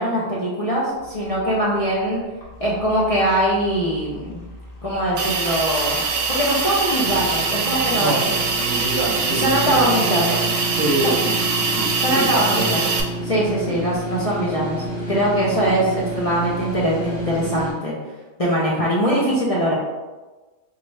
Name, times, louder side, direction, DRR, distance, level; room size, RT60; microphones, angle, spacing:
voice 1, 0.0-2.2 2.6-4.4 4.8-6.0 6.3-8.4 9.3-10.2 11.0-11.2 12.0-12.8 13.2-17.9 18.4-19.7, right 1 dB, 35° left, -6 dB, 0.6 m, -22 dB
sound 1, 0.9-9.5, equal, 55° left, 0.9 m, -43 dB
Hiss, 5.2-13.0, right 4 dB, 90° right, 0.9 m, -23 dB
sound 2, 7.0-17.7, right 1 dB, 80° left, 1.4 m, -30 dB
voice 2, 8.0-10.5 10.8-12.9 13.7-13.8, right 1 dB, 55° right, -2 dB, 0.8 m, -26 dB
4.0 x 2.4 x 3.1 m, 1.2 s
omnidirectional pair, 1.2 m